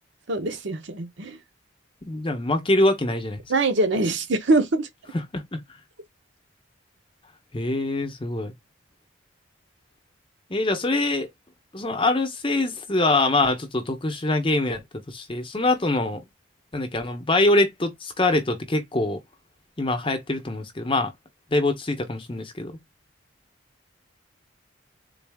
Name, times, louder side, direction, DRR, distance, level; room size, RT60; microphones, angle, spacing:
voice 1, 0.3-1.4 3.5-4.9, right 2 dB, 60° right, 0.8 m, -23 dB
voice 2, 2.0-3.4 5.1-5.6 7.5-8.5 10.5-11.3 11.7-16.2 16.7-19.2 19.8-21.1 21.5-22.7, left 2 dB, 25° left, 0.8 m, -24 dB
3.9 x 2.4 x 3.5 m
head